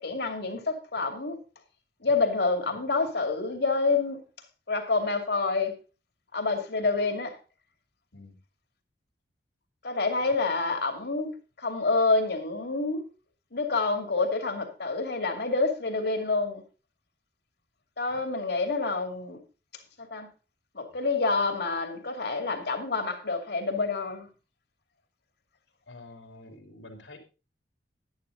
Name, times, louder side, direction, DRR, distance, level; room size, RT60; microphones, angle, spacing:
voice 1, 0.0-1.4 2.0-4.2 4.7-5.7 6.3-7.4 9.8-11.3 11.6-13.0 13.5-16.6 18.0-19.4 20.0-20.3 20.7-24.3, left 3 dB, 65° left, 2.6 m, -27 dB
voice 2, 25.9-27.2, left 2 dB, 80° left, 3.5 m, -48 dB
11.0 x 10.5 x 4.0 m
head